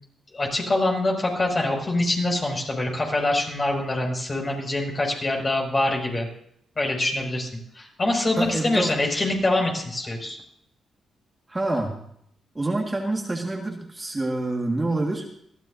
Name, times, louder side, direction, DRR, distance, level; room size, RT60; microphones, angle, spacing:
voice 1, 0.3-6.3 6.8-7.5 7.7-10.4, left 2 dB, 35° left, 0 dB, 6.1 m, -24 dB
voice 2, 8.4-8.9 11.5-12.0 12.6-15.3, right 2 dB, 25° right, 1 dB, 1.8 m, -27 dB
20.5 x 14.5 x 2.7 m, 0.71 s
supercardioid pair, 55°, 0 cm